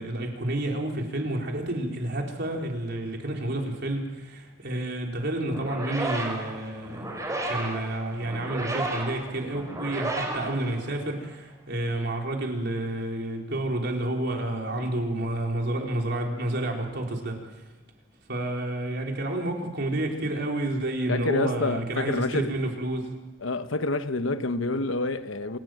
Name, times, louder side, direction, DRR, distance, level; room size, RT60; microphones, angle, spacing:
voice 1, 0.0-17.4 18.3-23.2, right 1 dB, 60° right, 4.1 m, -30 dB
sound 1, 5.5-11.3, right 2 dB, 15° right, 4.8 m, -33 dB
voice 2, 21.1-22.5 23.4-25.6, left 3 dB, 85° left, 1.1 m, -28 dB
27.5 x 13.0 x 9.2 m
head